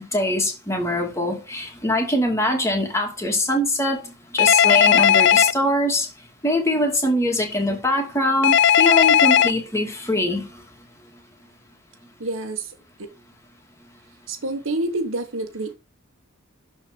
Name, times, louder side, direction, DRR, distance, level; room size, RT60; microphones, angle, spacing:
voice 1, 0.1-6.1 6.4-10.5, left 1 dB, 15° left, 2.5 m, -23 dB
Telephone, 4.4-5.5 8.4-9.5, left 9 dB, 55° left, 0.4 m, -15 dB
voice 2, 12.2-12.7 14.3-15.7, right 2 dB, 70° right, 1.4 m, -27 dB
12.5 x 4.2 x 5.3 m
head